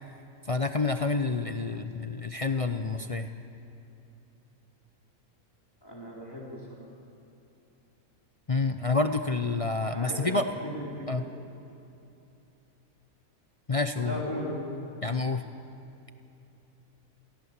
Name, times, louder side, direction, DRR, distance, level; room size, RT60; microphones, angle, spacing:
voice 1, 0.5-3.3 8.5-10.4 11.1-11.2 13.7-14.2 15.0-15.4, left 3 dB, 40° left, 7 dB, 0.4 m, -28 dB
voice 2, 5.8-6.9 9.9-11.3 14.0-14.7, equal, 15° left, -4 dB, 3.8 m, -37 dB
28.0 x 17.5 x 7.3 m, 2.8 s
omnidirectional pair, 1.6 m